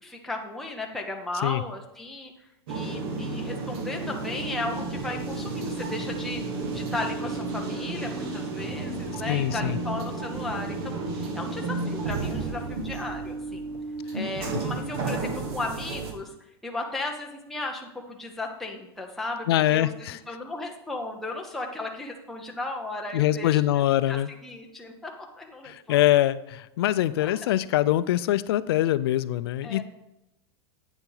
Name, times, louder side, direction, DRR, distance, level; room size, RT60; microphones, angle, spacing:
voice 1, 0.0-6.4 6.7-13.7 14.1-16.3 16.6-19.9 20.3-26.0 27.2-27.5 29.6-29.8, left 2 dB, ahead, 0 dB, 0.6 m, -35 dB
sound 1, 2.7-16.1, right 3 dB, 65° right, 1.6 m, -32 dB
voice 2, 9.3-9.8 19.5-20.2 23.1-24.3 25.6-29.8, left 13 dB, 65° left, 16 dB, 0.5 m, -23 dB
8.9 x 7.2 x 3.9 m, 0.91 s
supercardioid pair, 180°, 14 cm